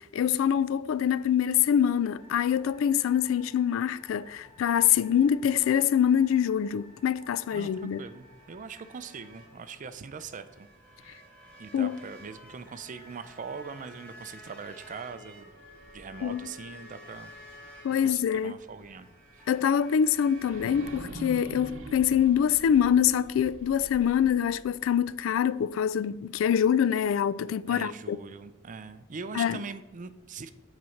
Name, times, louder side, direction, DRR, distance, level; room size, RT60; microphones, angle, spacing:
voice 1, 0.0-8.0 11.7-12.0 16.2-16.5 17.8-18.6 19.5-28.2 29.3-29.6, left 9 dB, 85° left, 0.3 m, -25 dB
sound 1, 2.1-22.1, equal, 5° left, 2.5 m, -53 dB
voice 2, 7.5-10.7 11.0-11.2 11.6-15.5 15.9-17.3 18.0-19.5 27.7-30.5, right 5 dB, 40° right, 0.5 m, -42 dB
sound 2, 15.4-18.4 18.8-18.9 20.3-25.4, right 2 dB, 85° right, 0.8 m, -46 dB
7.8 x 4.1 x 5.7 m
head